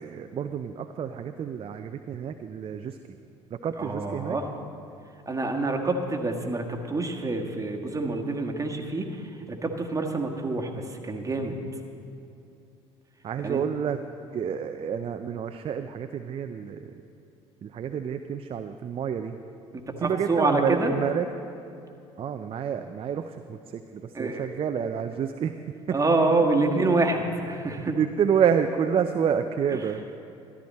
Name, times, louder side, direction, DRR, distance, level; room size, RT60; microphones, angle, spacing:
voice 1, 0.0-3.0 3.6-4.4 13.2-14.0 14.3-16.9 17.6-19.4 20.0-21.3 22.2-25.6 25.9-26.0 28.0-30.0, right 8 dB, 40° right, 8 dB, 0.5 m, -28 dB
voice 2, 3.8-4.5 5.3-11.5 13.4-13.6 19.7-20.9 24.1-24.5 25.9-28.0, right 2 dB, 20° right, 1 dB, 1.6 m, -27 dB
13.5 x 11.5 x 4.2 m, 2.6 s
hypercardioid pair, 60°, 15 cm